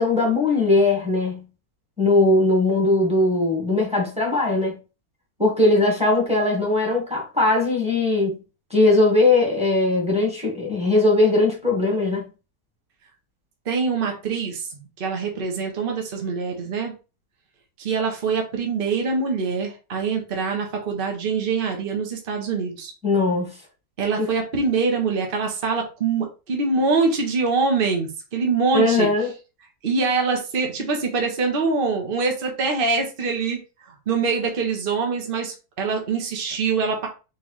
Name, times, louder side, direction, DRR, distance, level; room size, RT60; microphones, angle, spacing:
voice 1, 0.0-1.4 2.0-4.8 5.4-8.4 8.7-12.2 23.0-23.5 24.2-24.3 28.7-29.3, left 2 dB, 5° right, 1.5 m, -19 dB
voice 2, 13.7-14.6 15.0-16.9 17.8-22.9 24.0-29.1 29.8-33.6 34.1-37.1, right 4 dB, 40° right, 1.2 m, -24 dB
4.5 x 3.7 x 3.2 m
omnidirectional pair, 1.7 m